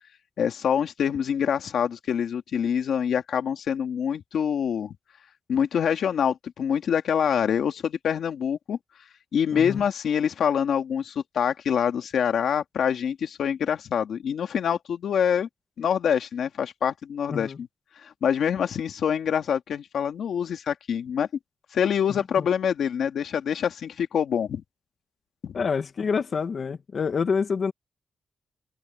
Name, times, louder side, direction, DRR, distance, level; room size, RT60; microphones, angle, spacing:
voice 1, 0.4-4.9 5.5-8.8 9.3-15.5 15.8-17.7 18.0-21.3 21.7-24.6 25.4-25.6, left 8 dB, 85° left, 2.1 m, -25 dB
voice 2, 9.5-9.8 17.3-17.6 22.4-22.5 25.5-27.7, left 5 dB, 60° left, 1.7 m, -27 dB
cardioid pair, 85°, 0 cm